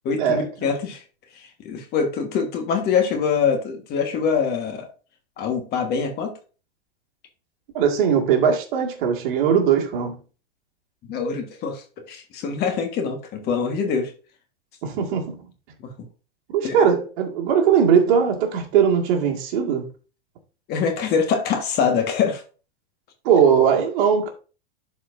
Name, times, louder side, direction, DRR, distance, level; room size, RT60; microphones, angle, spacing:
voice 1, 0.0-1.0 1.6-4.9 5.4-6.3 11.1-14.1 16.6-16.8 20.7-22.4, left 6 dB, 35° left, 1.5 m, -24 dB
voice 2, 7.7-10.2 14.8-15.4 16.5-19.9 23.2-24.3, right 7 dB, 55° right, 2.0 m, -19 dB
11.5 x 4.4 x 2.6 m
hypercardioid pair, 130°, 30 cm